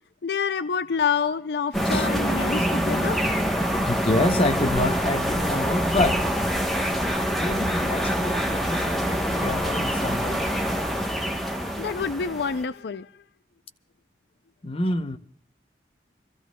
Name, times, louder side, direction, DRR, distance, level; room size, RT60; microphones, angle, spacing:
voice 1, 0.2-3.2 11.8-13.1, left 6 dB, 65° left, 0.5 m, -27 dB
sound 1, 1.7-12.6, equal, ahead, 1.1 m, -25 dB
voice 2, 3.8-6.2 7.3-10.4 14.6-15.2, left 2 dB, 30° left, 0.7 m, -27 dB
29.5 x 14.5 x 2.3 m
head